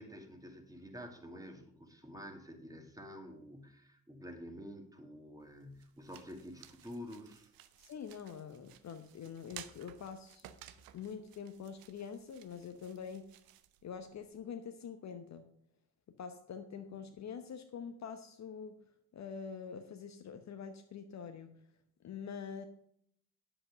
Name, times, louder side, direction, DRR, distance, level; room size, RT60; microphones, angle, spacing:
voice 1, 0.0-7.5, equal, 10° right, 3 dB, 2.3 m, -49 dB
sound 1, 5.4-14.4, right 12 dB, 55° right, 0.9 m, -57 dB
voice 2, 7.8-10.5 10.9-13.3 13.8-15.5 16.2-18.7 19.1-21.5 22.0-22.6, left 7 dB, 40° left, 7 dB, 1.0 m, -45 dB
10.0 x 7.9 x 5.2 m, 0.69 s
figure-of-eight pair, 45°, 43 cm